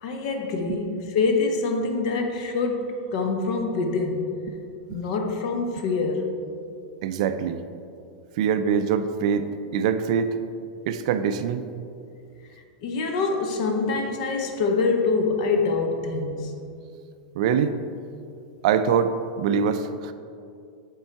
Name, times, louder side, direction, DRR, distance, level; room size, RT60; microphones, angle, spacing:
voice 1, 0.0-4.4 4.9-6.4 12.8-16.5, left 4 dB, 55° left, 4 dB, 0.8 m, -25 dB
voice 2, 7.0-7.6 8.4-10.4 10.9-11.6 17.4-17.7 18.6-20.1, right 7 dB, 55° right, 10 dB, 0.3 m, -24 dB
7.0 x 3.8 x 4.5 m, 2.4 s
supercardioid pair, 155°, 4 cm